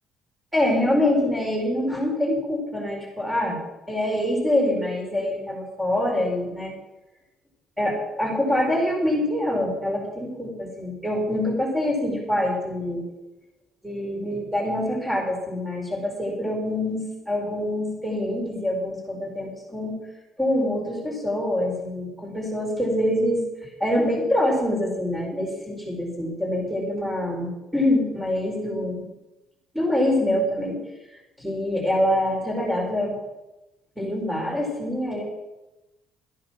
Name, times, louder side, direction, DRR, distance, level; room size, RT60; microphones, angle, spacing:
voice 1, 0.5-3.6 3.9-6.7 7.8-13.0 13.8-20.0 20.4-23.4 23.8-29.0 29.7-30.8 31.4-33.2 34.0-35.2, left 1 dB, 5° right, -1 dB, 4.7 m, -25 dB
13.0 x 10.5 x 6.0 m, 0.98 s
cardioid pair, 130°, 0 cm